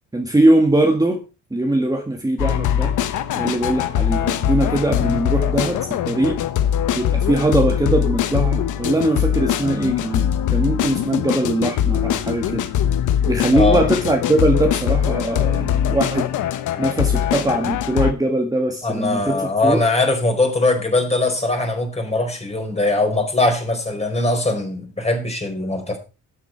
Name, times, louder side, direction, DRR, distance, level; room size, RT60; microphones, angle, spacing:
voice 1, 0.1-1.2 1.5-3.0 3.4-6.4 6.9-12.7 13.3-16.3 16.8-19.8, right 2 dB, 10° right, 3 dB, 1.8 m, -21 dB
sound 1, 2.4-18.1, left 10 dB, 80° left, 1.2 m, -21 dB
voice 2, 18.8-26.0, left 2 dB, 20° left, 3 dB, 4.7 m, -21 dB
12.5 x 8.3 x 4.6 m, 0.31 s
cardioid pair, 90°, 30 cm